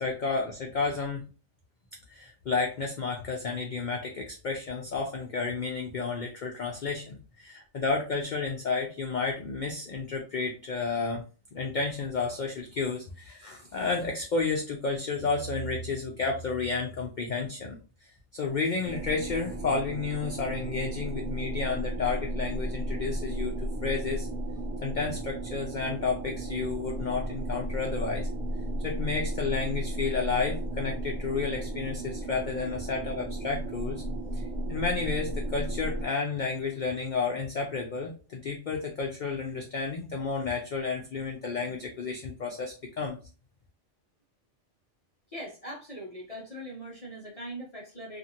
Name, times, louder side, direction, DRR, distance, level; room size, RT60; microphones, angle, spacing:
voice 1, 0.0-1.3 2.1-11.2 11.5-17.8 18.3-24.3 24.8-28.3 28.8-34.0 34.3-34.4 34.7-43.2, left 4 dB, 90° left, 1 dB, 0.4 m, -31 dB
sound 1, 18.8-36.1, right 1 dB, 45° right, 0.6 m, -34 dB
voice 2, 45.3-48.2, equal, 35° left, -4 dB, 0.7 m, -41 dB
2.6 x 2.5 x 2.7 m, 0.34 s
omnidirectional pair, 1.4 m